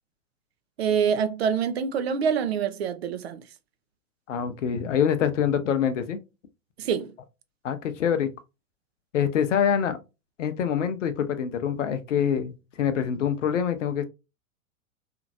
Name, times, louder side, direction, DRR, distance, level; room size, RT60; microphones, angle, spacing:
voice 1, 0.8-3.4 6.8-7.1, right 7 dB, 50° right, 0.5 m, -25 dB
voice 2, 4.3-6.2 7.6-8.3 9.1-10.0 10.4-14.0, left 8 dB, 60° left, 0.6 m, -25 dB
2.9 x 2.5 x 2.5 m
figure-of-eight pair, 100°, 42 cm